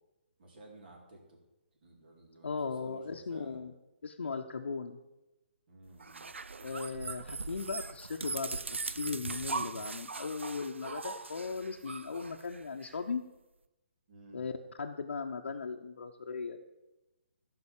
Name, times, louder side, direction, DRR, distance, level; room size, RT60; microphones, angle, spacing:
voice 1, 0.4-1.4 1.8-3.6 5.7-6.3 14.1-14.4, right 2 dB, 50° right, 0 dB, 4.2 m, -55 dB
voice 2, 2.4-3.7 4.0-5.0 6.6-8.6 8.8-13.2 14.3-14.5 14.8-16.6, left 5 dB, 75° left, 1 dB, 0.9 m, -37 dB
sound 1, 6.0-12.9, right 4 dB, 85° right, 0.5 m, -40 dB
14.5 x 6.0 x 7.4 m, 0.99 s
figure-of-eight pair, 140°, 6 cm